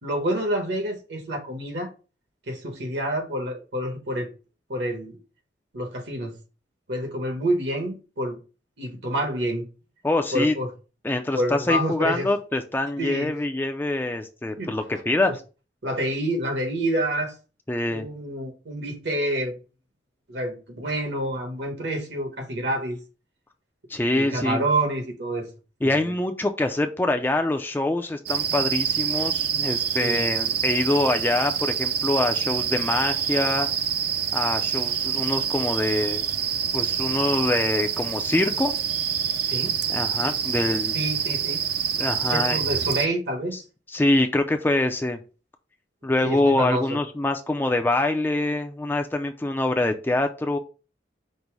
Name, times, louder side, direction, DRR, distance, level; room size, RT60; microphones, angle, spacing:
voice 1, 0.0-1.9 2.5-4.3 4.7-5.2 5.7-6.3 6.9-8.4 8.8-9.6 10.3-10.7 11.3-12.3 13.0-13.3 14.6-14.7 15.2-15.3 15.8-17.3 17.9-19.6 20.3-23.0 24.1-25.5 25.8-26.1 30.0-30.2 39.5-39.7 40.9-41.6 42.3-43.6 46.2-47.0, right 1 dB, 75° right, 1.2 m, -28 dB
voice 2, 10.0-10.5 11.0-15.4 17.7-18.1 23.9-24.6 25.8-33.7 34.3-36.3 36.7-38.8 39.9-41.0 42.0-42.6 43.9-45.2 46.0-50.6, left 2 dB, 10° left, 0.3 m, -24 dB
sound 1, 28.3-43.1, right 8 dB, 55° right, 0.5 m, -26 dB
5.3 x 2.0 x 4.5 m
head